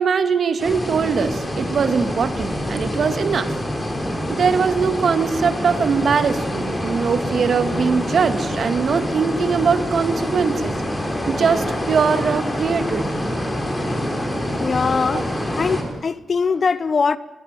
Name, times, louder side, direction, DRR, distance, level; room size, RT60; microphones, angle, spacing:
voice 1, 0.0-3.5 4.3-10.8 11.3-13.1 15.1-15.2, right 6 dB, 60° right, 2.0 m, -21 dB
sound 1, 0.6-15.8, equal, 15° left, 5.5 m, -26 dB
voice 2, 14.6-15.3 15.6-17.2, left 5 dB, 45° left, 1.0 m, -21 dB
23.5 x 21.0 x 9.1 m
wide cardioid pair, 130°, 0 cm